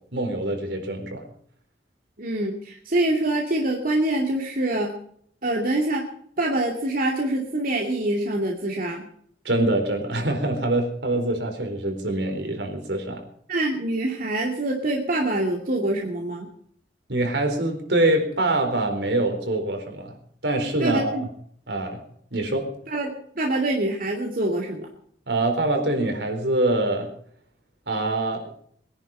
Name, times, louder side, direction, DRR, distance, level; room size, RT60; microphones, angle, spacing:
voice 1, 0.1-1.3 9.4-13.2 17.1-20.1 20.4-21.3 21.7-22.0 22.3-22.7 25.3-27.1 27.9-28.5, right 2 dB, 75° right, 4 dB, 4.3 m, -24 dB
voice 2, 2.2-5.0 5.4-6.1 6.4-9.1 13.5-16.5 20.8-21.2 22.9-24.9, right 1 dB, 55° right, 0 dB, 2.5 m, -25 dB
22.5 x 11.0 x 5.6 m, 0.63 s
head